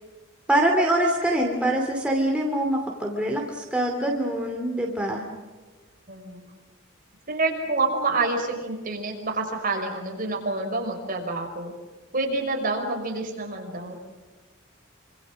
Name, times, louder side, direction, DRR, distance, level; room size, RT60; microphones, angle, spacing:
voice 1, 0.5-5.2, right 1 dB, 5° right, 0 dB, 2.7 m, -24 dB
voice 2, 6.1-6.4 7.3-11.7 12.1-14.1, right 3 dB, 45° right, 2 dB, 5.6 m, -28 dB
26.5 x 26.0 x 6.4 m, 1.3 s
head